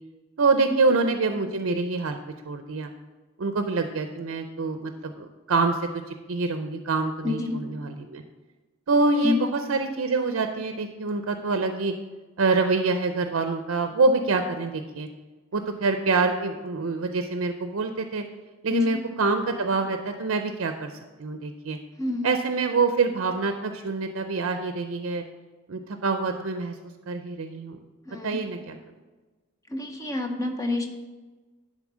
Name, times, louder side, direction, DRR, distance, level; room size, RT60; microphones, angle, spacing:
voice 1, 0.4-2.2 2.5-2.9 3.4-5.8 6.1-8.2 8.9-11.9 12.4-15.1 15.5-18.2 18.6-20.9 21.2-21.8 22.2-25.2 25.7-26.7 27.1-27.8 28.2-28.8, right 3 dB, 75° right, 7 dB, 0.5 m, -25 dB
voice 2, 7.2-7.6 9.2-9.4 18.7-19.0 22.0-22.2 28.1-28.4 29.7-30.9, left 3 dB, 15° left, 3 dB, 0.8 m, -28 dB
11.0 x 3.9 x 6.1 m, 1.2 s
head